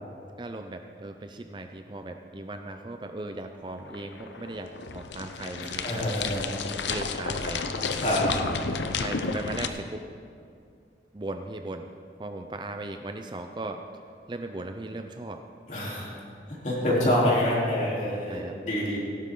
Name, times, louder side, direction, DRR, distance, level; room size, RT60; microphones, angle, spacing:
voice 1, 0.4-6.1 6.9-7.7 8.9-10.0 11.1-11.9 12.2-13.8 14.3-15.4 18.3-18.6, right 2 dB, 25° right, 6 dB, 0.5 m, -37 dB
sound 1, 3.7-9.7, left 4 dB, 90° left, 0.7 m, -32 dB
voice 2, 5.8-6.5 8.0-8.2 15.7-16.2 16.6-19.0, left 1 dB, 45° left, -5 dB, 3.5 m, -26 dB
17.0 x 12.0 x 3.8 m, 2.4 s
head